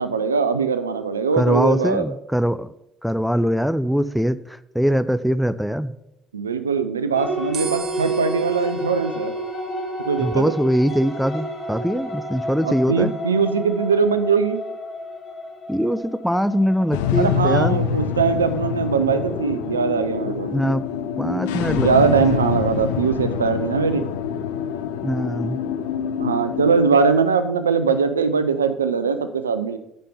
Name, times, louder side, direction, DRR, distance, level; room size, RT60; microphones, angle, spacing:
voice 1, 0.0-2.0 6.3-9.3 10.1-10.5 12.6-14.6 17.1-20.5 21.7-24.0 26.2-29.8, right 5 dB, 85° right, 11 dB, 0.4 m, -21 dB
voice 2, 1.4-2.7 3.0-6.0 10.2-13.1 15.7-17.8 20.5-20.8 21.2-22.2 25.0-25.6, equal, ahead, 14 dB, 0.4 m, -22 dB
sound 1, 7.1-19.1, equal, 35° left, 1.9 m, -31 dB
sound 2, 7.5-14.0, right 5 dB, 55° right, 1.1 m, -41 dB
sound 3, 16.9-26.9, left 8 dB, 70° left, 0.4 m, -26 dB
7.2 x 5.3 x 5.4 m, 0.81 s
figure-of-eight pair, 50°, 0 cm